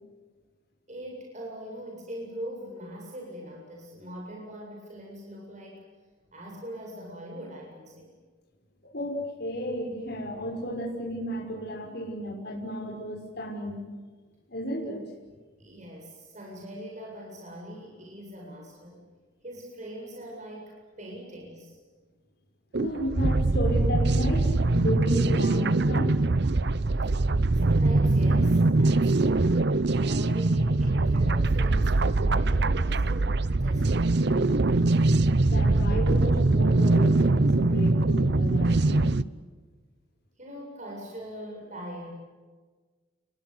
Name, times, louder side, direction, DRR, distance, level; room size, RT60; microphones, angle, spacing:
voice 1, 0.9-5.8 6.3-8.2 15.6-19.1 19.4-21.8 27.0-27.1 27.5-29.6 30.0-34.5 40.4-42.1, equal, 40° right, -1 dB, 7.9 m, -42 dB
voice 2, 8.9-13.8 14.5-15.0 22.8-26.2 35.4-39.2, equal, 60° left, -1 dB, 6.1 m, -33 dB
sound 1, 22.7-39.2, right 2 dB, 60° right, 0.8 m, -23 dB
30.0 x 22.5 x 8.2 m, 1.4 s
head